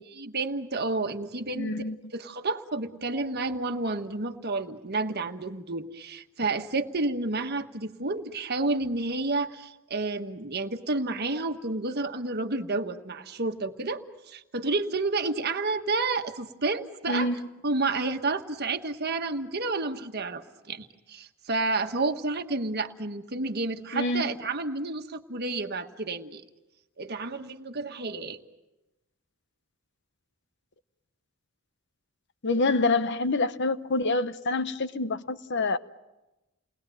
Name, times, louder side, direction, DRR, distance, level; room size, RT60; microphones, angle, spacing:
voice 1, 0.2-1.7 2.1-17.3 17.6-26.4 27.0-28.4, right 3 dB, 50° right, 1.4 m, -30 dB
voice 2, 1.5-2.0 17.1-17.4 23.9-24.2 32.4-35.8, left 3 dB, 55° left, 1.0 m, -26 dB
29.5 x 20.5 x 9.2 m
head